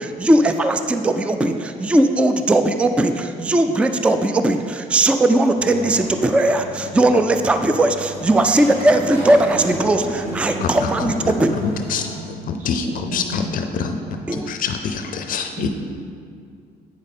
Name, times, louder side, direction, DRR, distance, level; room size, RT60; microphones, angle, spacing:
voice 1, 0.0-11.5 14.3-14.5, right 1 dB, 5° right, 7 dB, 0.3 m, -18 dB
sound 1, 5.6-12.2, left 1 dB, 80° right, 1.9 m, -36 dB
voice 2, 9.9-10.9 11.2-11.7 12.1-14.3 15.6-15.7, right 4 dB, 50° right, 1 dB, 1.2 m, -34 dB
voice 3, 10.6-11.3 11.6-12.1 12.5-14.0 14.3-15.7, left 6 dB, 55° left, 6 dB, 0.5 m, -25 dB
8.7 x 5.0 x 4.2 m, 2.2 s
cardioid pair, 110°, 17 cm